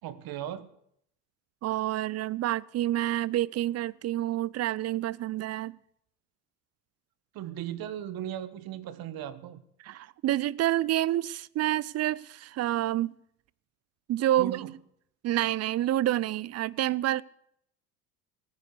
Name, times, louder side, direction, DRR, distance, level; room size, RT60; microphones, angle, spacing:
voice 1, 0.0-0.7 7.3-9.6 14.3-14.7, right 11 dB, 55° right, 1.4 m, -37 dB
voice 2, 1.6-5.8 9.8-13.1 14.1-14.6 15.2-17.2, right 13 dB, 35° right, 0.5 m, -28 dB
18.0 x 9.5 x 6.8 m
hypercardioid pair, 70°, 44 cm